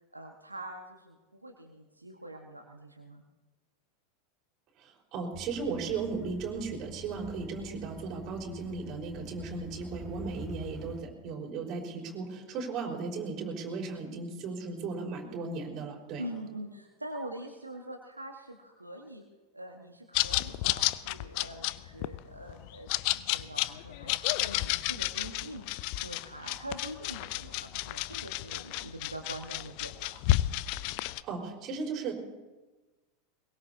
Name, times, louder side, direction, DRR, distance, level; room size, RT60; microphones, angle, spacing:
voice 1, 0.1-3.2 16.2-19.2 19.5-30.2, right 1 dB, 90° right, 2 dB, 1.4 m, -44 dB
voice 2, 4.8-16.2 31.2-32.1, right 4 dB, 40° right, 0 dB, 4.7 m, -36 dB
sound 1, 5.3-11.0, right 1 dB, 15° right, 1.4 m, -46 dB
sound 2, 20.1-31.2, left 18 dB, 50° left, 0.5 m, -31 dB
22.0 x 22.0 x 2.8 m, 1.2 s
figure-of-eight pair, 85°, 0 cm